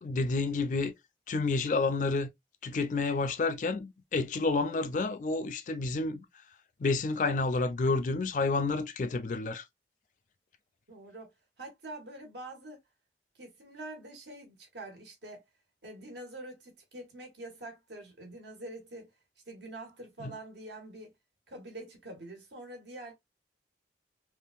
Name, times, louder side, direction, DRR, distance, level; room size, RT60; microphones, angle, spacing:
voice 1, 0.0-0.9 1.3-2.3 2.6-6.2 6.8-9.6 20.2-20.3, left 3 dB, 45° left, 0.4 m, -29 dB
voice 2, 10.9-11.3 11.6-12.8 13.3-15.4 15.8-19.1 19.5-21.1 21.5-23.1, right 1 dB, 80° right, 1.5 m, -45 dB
3.6 x 2.4 x 2.4 m
head